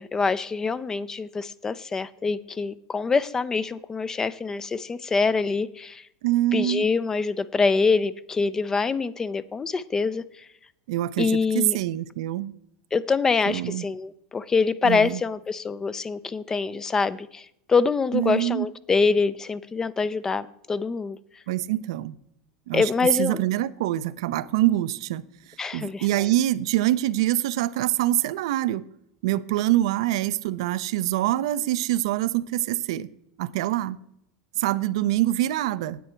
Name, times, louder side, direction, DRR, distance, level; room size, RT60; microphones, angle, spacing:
voice 1, 0.0-6.0 6.5-10.5 11.2-11.8 12.9-21.2 22.7-23.4 25.6-26.3, left 4 dB, 20° left, 16 dB, 0.4 m, -25 dB
voice 2, 6.2-6.8 10.9-12.5 13.5-13.8 14.8-15.2 18.1-18.7 21.5-22.2 22.7-22.9 23.2-25.2 25.7-28.8 29.2-33.1 33.4-34.0 34.6-36.0, right 14 dB, 75° right, 16 dB, 0.5 m, -25 dB
9.2 x 8.5 x 4.4 m, 0.76 s
supercardioid pair, 110°, 3 cm